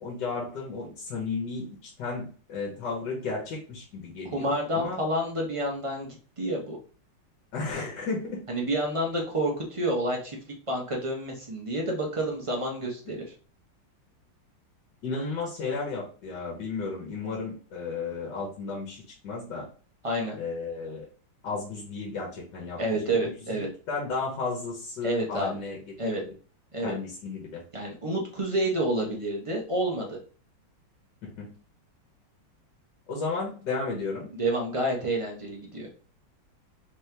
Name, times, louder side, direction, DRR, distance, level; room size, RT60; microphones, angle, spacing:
voice 1, 0.0-5.0 7.5-8.4 13.1-13.2 15.0-19.7 20.4-21.1 21.4-22.8 23.2-25.8 26.2-26.3 26.8-27.6 31.4-31.5 33.1-34.3, left 4 dB, 70° left, -2 dB, 1.7 m, -33 dB
voice 2, 4.3-6.8 8.5-10.4 10.7-13.3 20.0-20.4 22.8-23.7 25.0-25.5 26.0-26.2 26.7-26.9 27.7-30.2 34.3-35.9, right 1 dB, 40° right, 0 dB, 0.4 m, -29 dB
4.2 x 3.0 x 3.3 m, 0.40 s
omnidirectional pair, 2.1 m